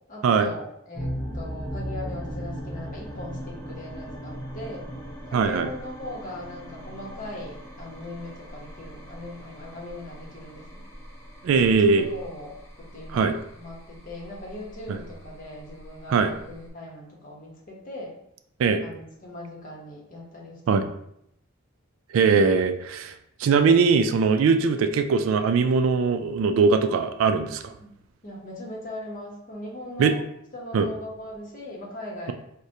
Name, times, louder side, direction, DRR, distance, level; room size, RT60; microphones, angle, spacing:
voice 1, 0.1-4.9 5.3-10.8 11.5-12.6 12.9-13.3 13.5-18.1 18.8-21.0 24.5-24.6 27.8-27.9 28.2-30.2 30.5-32.3, left 1 dB, 40° left, -3 dB, 0.9 m, -39 dB
sound 1, 0.9-16.7, equal, 15° left, 0.7 m, -39 dB
voice 2, 5.3-5.7 11.4-12.1 13.1-13.3 14.9-15.0 16.1-16.3 18.6-18.8 20.7-20.8 22.1-23.1 23.4-27.7 30.0-30.1 30.7-30.9, right 5 dB, 70° right, 8 dB, 0.3 m, -21 dB
4.7 x 2.1 x 2.7 m, 0.75 s
head